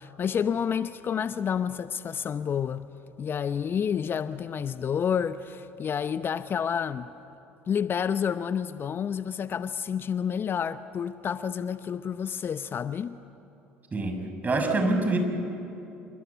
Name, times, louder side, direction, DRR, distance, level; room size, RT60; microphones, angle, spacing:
voice 1, 0.0-2.9 3.2-7.1 7.7-13.2, left 7 dB, 40° left, 0.8 m, -29 dB
voice 2, 13.9-15.2, right 2 dB, 25° right, 6.0 m, -26 dB
28.5 x 24.5 x 8.4 m
hypercardioid pair, 65°, 6 cm